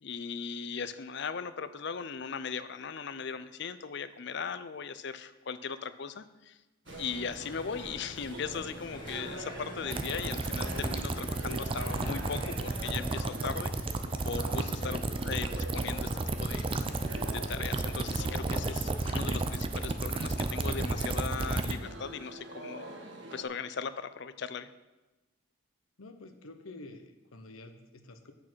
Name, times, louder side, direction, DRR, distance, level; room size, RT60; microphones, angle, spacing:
voice 1, 0.0-6.6 7.0-13.7 14.2-16.1 16.4-22.9 23.3-24.7, left 6 dB, 55° left, 13 dB, 0.5 m, -38 dB
sound 1, 6.9-13.1, left 1 dB, 20° left, 1.3 m, -45 dB
sound 2, 6.9-23.4, right 1 dB, 55° right, 1.4 m, -46 dB
sound 3, 9.9-21.7, right 2 dB, 25° right, 0.4 m, -32 dB
voice 2, 14.7-15.0 26.0-28.3, left 2 dB, 80° left, 6 dB, 0.9 m, -49 dB
8.4 x 6.6 x 6.2 m, 1.1 s
head